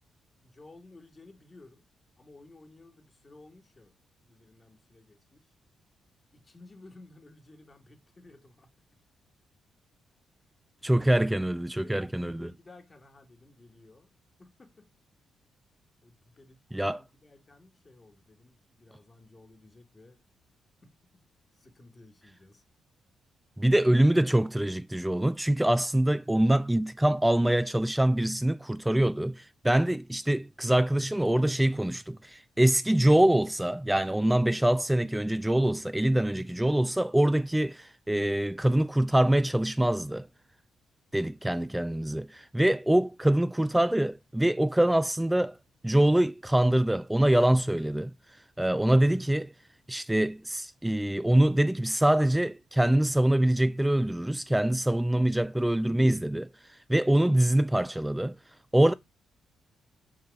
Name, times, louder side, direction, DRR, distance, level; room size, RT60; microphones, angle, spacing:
voice 1, 0.4-1.8 2.2-3.9 4.3-5.5 6.3-8.7 10.9-14.1 14.4-14.9 16.0-20.2 20.8-20.9 21.5-22.6, left 2 dB, 35° left, 1.7 m, -54 dB
voice 2, 10.8-12.5 16.7-17.0 23.6-40.3 41.1-45.6 45.8-48.1 48.6-49.5 49.9-58.3 58.7-58.9, right 1 dB, 10° right, 0.3 m, -24 dB
5.5 x 4.7 x 4.7 m
hypercardioid pair, 45°, 0 cm